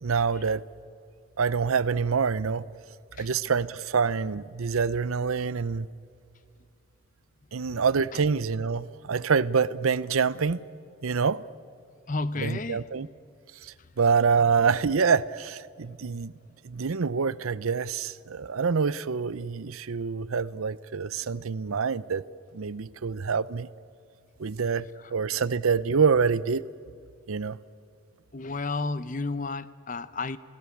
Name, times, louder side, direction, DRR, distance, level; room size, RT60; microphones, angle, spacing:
voice 1, 0.0-0.6 1.4-2.6 3.2-5.9 7.5-10.6 11.0-11.4 12.4-13.1 13.6-16.3 16.6-22.2 22.5-23.7 24.4-26.6 27.3-27.6, right 5 dB, 85° right, 0.6 m, -26 dB
voice 2, 12.1-12.9 25.0-25.1 28.3-30.4, left 3 dB, 40° left, 0.7 m, -32 dB
29.0 x 17.5 x 8.6 m
head